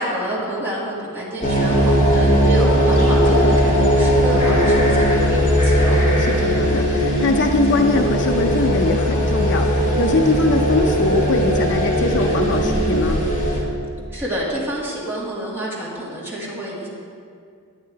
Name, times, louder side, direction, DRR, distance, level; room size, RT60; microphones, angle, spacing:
voice 1, 0.0-6.0 14.1-16.9, equal, 10° right, -7 dB, 2.1 m, -28 dB
sound 1, 1.4-13.6, equal, 35° left, 2.2 m, -18 dB
voice 2, 6.2-13.2, left 3 dB, 55° left, 5 dB, 0.5 m, -22 dB
9.5 x 9.3 x 4.6 m, 2.2 s
head